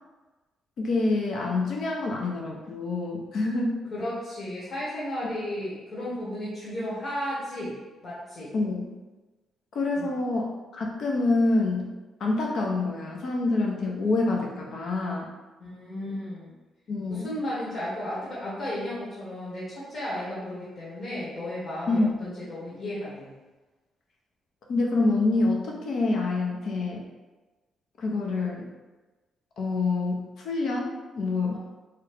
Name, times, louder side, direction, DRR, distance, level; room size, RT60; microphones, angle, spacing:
voice 1, 0.8-3.7 5.2-5.3 8.5-8.9 9.7-11.9 12.2-15.3 16.9-17.3 21.9-22.1 24.7-27.0 28.0-28.7 29.6-31.6, left 3 dB, 70° left, -1 dB, 0.6 m, -26 dB
voice 2, 3.9-8.5 9.9-10.1 15.6-16.5 17.1-23.3, left 1 dB, 50° left, -8 dB, 1.2 m, -34 dB
3.0 x 2.4 x 3.4 m, 1.2 s
supercardioid pair, 65°, 0 cm